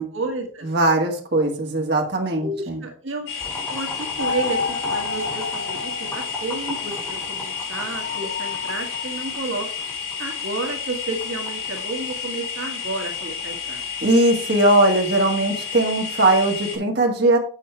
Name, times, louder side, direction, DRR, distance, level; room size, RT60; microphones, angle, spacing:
voice 1, 0.0-0.7 2.4-9.7 10.2-13.8, right 2 dB, 70° right, 2 dB, 1.6 m, -31 dB
voice 2, 0.6-2.8 14.0-17.4, right 2 dB, 50° right, 0 dB, 1.8 m, -19 dB
sound 1, 3.3-16.8, left 6 dB, 70° left, 5.0 m, -31 dB
Boiling, 3.4-16.6, left 2 dB, 15° left, 3.3 m, -39 dB
sound 2, 4.2-6.8 8.0-9.3, left 4 dB, 55° left, 1.2 m, -30 dB
8.3 x 6.4 x 4.5 m, 0.42 s
head